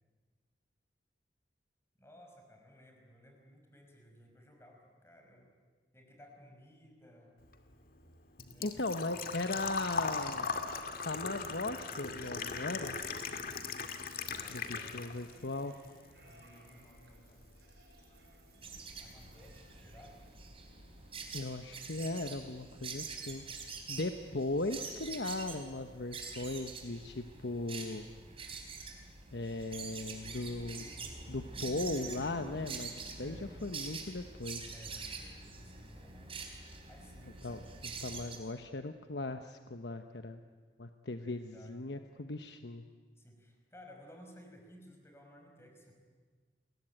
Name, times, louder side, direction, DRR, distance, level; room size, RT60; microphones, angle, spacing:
voice 1, 2.0-5.6 5.9-7.4 8.5-9.4 14.4-15.0 16.2-17.5 18.5-20.2 33.2-33.7 34.7-36.5 36.9-37.9 41.2-41.8 43.2-45.9, equal, 15° left, 2 dB, 5.5 m, -57 dB
Engine / Trickle dribble / Fill (with liquid), 7.4-15.4 15.7-16.7 17.0-17.1 19.0-19.1 19.3-19.6 20.0-20.1 20.3-20.4, left 4 dB, 50° left, 2.2 m, -39 dB
voice 2, 8.6-10.5 11.0-13.0 14.5-15.8 21.3-23.4 23.9-28.1 29.3-30.9 31.3-34.7 37.4-40.4 40.8-42.8, left 2 dB, 70° left, 7 dB, 1.1 m, -38 dB
sound 1, 15.0-20.5, right 2 dB, 60° right, 6.7 m, -61 dB
sound 2, 18.6-38.4, right 4 dB, 30° right, 4.0 m, -45 dB
30.0 x 22.0 x 9.0 m, 1.5 s
head